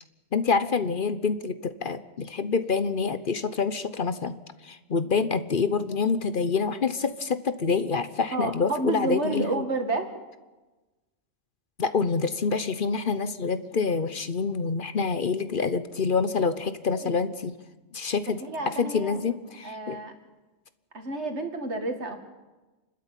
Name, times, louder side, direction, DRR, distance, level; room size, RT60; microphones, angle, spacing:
voice 1, 0.3-4.4 4.6-9.6 11.8-17.6 17.9-20.0, left 5 dB, 45° left, 12 dB, 1.0 m, -27 dB
voice 2, 8.3-10.1 16.9-17.2 18.4-19.2 19.6-20.1 20.9-22.2, right 2 dB, 60° right, 5 dB, 2.5 m, -30 dB
28.0 x 12.5 x 9.0 m, 1.1 s
omnidirectional pair, 1.3 m